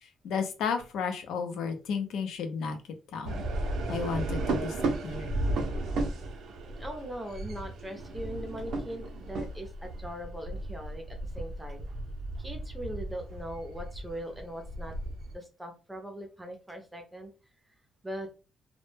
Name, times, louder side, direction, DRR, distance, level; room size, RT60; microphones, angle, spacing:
voice 1, 0.0-2.8 3.1-3.4 3.9-4.7 5.0-5.3, left 6 dB, 80° left, 6 dB, 0.5 m, -33 dB
sound 1, 3.2-15.4, right 2 dB, 60° right, 0.4 m, -34 dB
voice 2, 6.7-11.9 12.4-14.9 15.3-17.3 18.0-18.3, equal, 5° right, 4 dB, 0.5 m, -40 dB
2.1 x 2.0 x 3.1 m, 0.33 s
cardioid pair, 175°, 0 cm